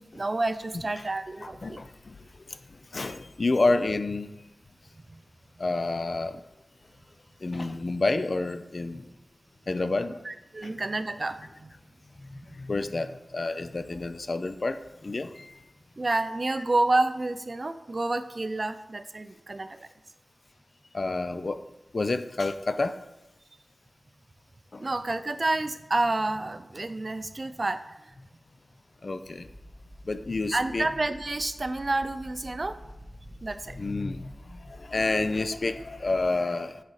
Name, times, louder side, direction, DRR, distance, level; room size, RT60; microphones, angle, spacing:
voice 1, 0.0-1.8 5.1-5.2 10.2-11.7 12.3-12.6 16.0-19.9 24.8-28.1 30.5-32.8 33.4-33.8, right 2 dB, 40° right, 11 dB, 0.4 m, -29 dB
voice 2, 1.4-2.2 2.9-4.3 5.6-6.4 7.4-9.0 9.7-10.2 10.6-10.7 12.3-15.5 20.9-21.6 21.9-23.0 24.7-24.9 29.0-29.5 30.0-30.9 33.7-36.8, left 3 dB, 50° left, 10 dB, 0.4 m, -29 dB
sound 1, 29.4-36.3, equal, 10° left, 0.8 m, -48 dB
8.8 x 4.9 x 4.1 m, 0.93 s
wide cardioid pair, 95°, 0 cm